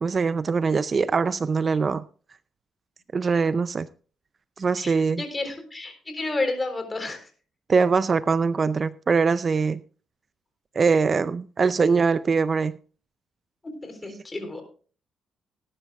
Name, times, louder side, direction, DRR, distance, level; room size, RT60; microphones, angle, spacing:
voice 1, 0.0-2.0 3.1-3.9 4.6-5.2 7.7-9.8 10.8-12.8, right 5 dB, 40° right, 0.4 m, -22 dB
voice 2, 4.8-7.3 13.8-14.6, left 2 dB, 25° left, 3.8 m, -31 dB
19.5 x 11.0 x 2.4 m
cardioid pair, 90°, 0 cm